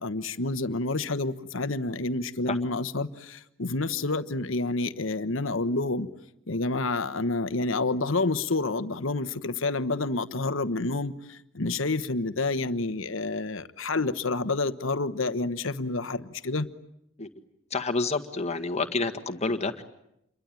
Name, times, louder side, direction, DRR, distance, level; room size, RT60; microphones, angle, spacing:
voice 1, 0.0-6.1 6.5-16.7, left 3 dB, 70° left, 1.2 m, -29 dB
voice 2, 17.7-19.8, left 3 dB, 30° left, 1.8 m, -28 dB
28.5 x 22.5 x 9.1 m
head